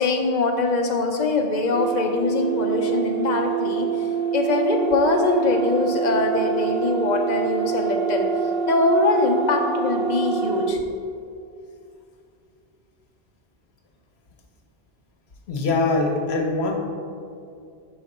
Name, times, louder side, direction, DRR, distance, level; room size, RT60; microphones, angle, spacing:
voice 1, 0.0-4.1 4.3-8.3 8.7-10.8, left 2 dB, 50° left, 3 dB, 0.7 m, -22 dB
sound 1, 1.7-10.8, right 7 dB, 65° right, 0.7 m, -26 dB
voice 2, 15.5-16.8, left 3 dB, 80° left, 3 dB, 1.0 m, -22 dB
5.8 x 4.0 x 5.3 m, 2.4 s
omnidirectional pair, 1.1 m